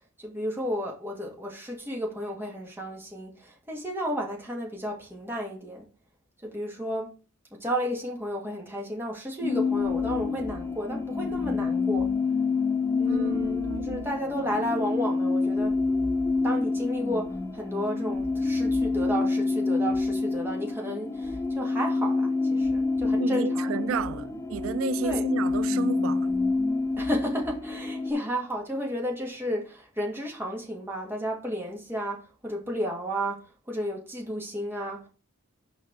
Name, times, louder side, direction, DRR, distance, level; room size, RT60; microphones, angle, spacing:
voice 1, 0.2-5.9 6.4-7.1 7.5-12.1 13.0-15.8 16.4-24.2 25.0-25.3 27.0-33.4 33.7-35.1, equal, 10° right, 2.1 m, -32 dB
sound 1, 9.4-28.1, left 3 dB, 15° left, 0.6 m, -27 dB
voice 2, 13.0-14.1 23.2-26.3, right 6 dB, 85° right, 0.4 m, -32 dB
6.7 x 5.0 x 4.7 m
head